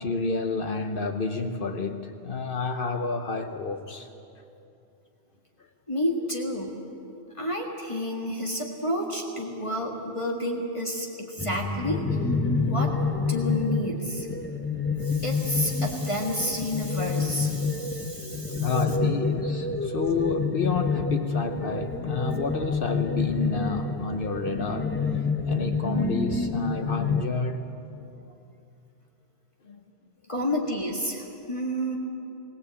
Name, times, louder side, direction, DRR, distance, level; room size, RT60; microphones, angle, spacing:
voice 1, 0.0-4.1 18.6-25.0 25.4-27.6 29.7-29.8, left 3 dB, 55° left, 6 dB, 1.1 m, -29 dB
voice 2, 5.9-6.8 7.4-14.3 15.0-18.7 30.3-32.0, equal, 30° left, 0 dB, 2.0 m, -30 dB
sound 1, 11.4-27.2, left 4 dB, 15° left, 0.7 m, -28 dB
21.0 x 17.5 x 8.3 m, 2.7 s
omnidirectional pair, 1.1 m